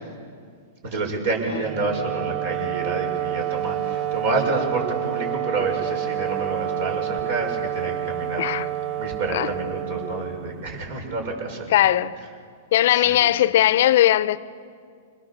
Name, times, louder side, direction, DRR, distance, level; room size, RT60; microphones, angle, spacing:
voice 1, 0.8-8.7 9.0-11.6 12.1-12.4 12.8-13.2, right 3 dB, 65° right, 6.2 m, -28 dB
Wind instrument woodwind instrument, 1.6-10.9, right 12 dB, 40° right, 0.5 m, -29 dB
voice 2, 11.7-12.1 12.7-14.4, left 13 dB, 65° left, 0.7 m, -18 dB
26.5 x 20.5 x 7.0 m
hypercardioid pair, 120°, 0 cm